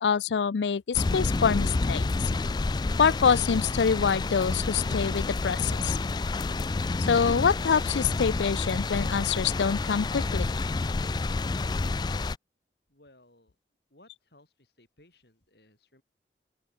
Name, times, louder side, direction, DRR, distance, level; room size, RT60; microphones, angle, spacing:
voice 1, 0.0-2.1 3.0-6.0 7.1-10.5, left 6 dB, 85° left, 0.5 m, -25 dB
sound 1, 0.9-12.4, left 3 dB, 25° left, 0.3 m, -29 dB
voice 2, 12.9-13.5 13.9-16.0, left 1 dB, 65° left, 7.6 m, -60 dB
open air
head